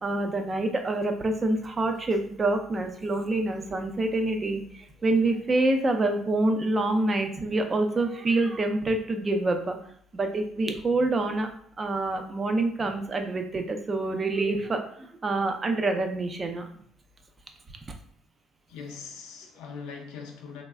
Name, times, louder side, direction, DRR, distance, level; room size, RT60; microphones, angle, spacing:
voice 1, 0.0-9.8 10.1-11.5 11.8-16.7, right 2 dB, 30° right, 0.5 m, -26 dB
voice 2, 18.7-20.6, left 5 dB, 85° left, 0.6 m, -41 dB
3.1 x 2.1 x 3.5 m
cardioid pair, 105°, 0 cm